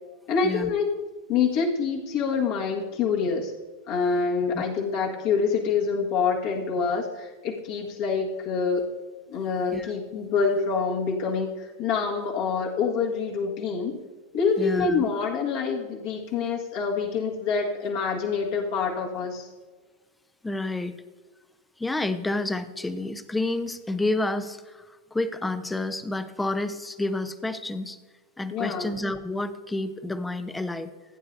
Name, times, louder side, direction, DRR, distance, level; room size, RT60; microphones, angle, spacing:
voice 1, 0.3-0.9 1.3-3.5 3.9-8.8 9.3-14.0 14.3-19.5 28.5-28.9, left 5 dB, 55° left, -2 dB, 1.7 m, -26 dB
voice 2, 14.6-15.0 20.4-20.9 21.8-28.0 28.4-30.9, left 2 dB, 10° left, 11 dB, 0.7 m, -29 dB
15.5 x 8.9 x 2.7 m, 1.4 s
figure-of-eight pair, 90°, 0 cm